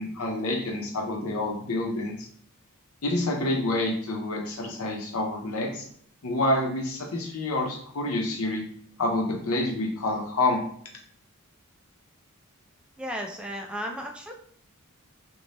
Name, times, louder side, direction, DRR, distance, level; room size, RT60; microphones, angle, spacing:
voice 1, 0.0-2.3 3.0-5.8 6.2-8.6 9.0-10.6, left 2 dB, 70° left, 0 dB, 0.7 m, -28 dB
voice 2, 13.0-14.3, equal, 5° right, 2 dB, 0.3 m, -34 dB
2.6 x 2.1 x 3.2 m, 0.62 s
head